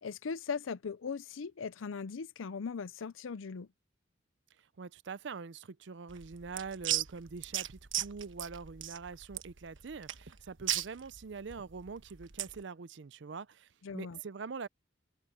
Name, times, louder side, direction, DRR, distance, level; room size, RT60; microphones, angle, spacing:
voice 1, 0.0-3.7 13.8-14.2, left 5 dB, 90° left, 0.5 m, -39 dB
voice 2, 4.8-14.7, right 5 dB, 60° right, 0.5 m, -44 dB
sound 1, 6.1-12.6, right 12 dB, 75° right, 1.2 m, -37 dB
head